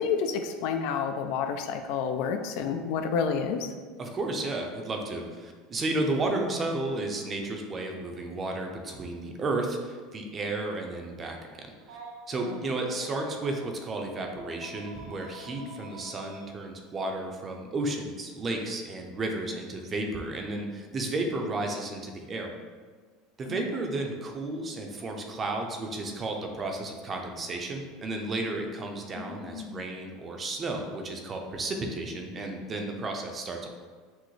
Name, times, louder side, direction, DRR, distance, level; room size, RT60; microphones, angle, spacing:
voice 1, 0.0-3.7 12.5-12.7 23.5-23.6 29.1-29.8, left 6 dB, 65° left, 6 dB, 0.3 m, -30 dB
voice 2, 4.0-11.4 12.3-22.5 23.4-33.7, right 2 dB, 25° right, 2 dB, 0.5 m, -33 dB
Telephone, 11.8-13.7 14.6-16.5 17.8-18.0 19.5-19.7, right 2 dB, 75° right, 0.7 m, -47 dB
6.0 x 2.0 x 3.1 m, 1.5 s
supercardioid pair, 140°, 0 cm